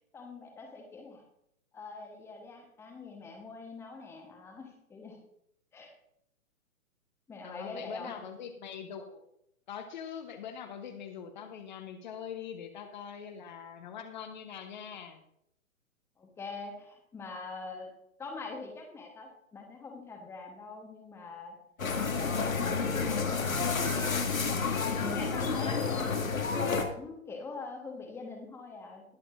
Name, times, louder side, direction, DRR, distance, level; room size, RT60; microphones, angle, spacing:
voice 1, 0.1-1.2 1.7-5.2 5.7-5.9 7.3-8.2 16.2-17.9 18.2-21.6 22.0-26.3 26.8-29.0, left 3 dB, 5° left, 3 dB, 1.1 m, -44 dB
voice 2, 7.4-9.2 9.7-15.2, left 8 dB, 35° left, 6 dB, 1.0 m, -43 dB
sound 1, 21.8-26.8, left 5 dB, 70° left, 1.9 m, -30 dB
20.0 x 7.9 x 2.5 m, 0.76 s
figure-of-eight pair, 120°, 42 cm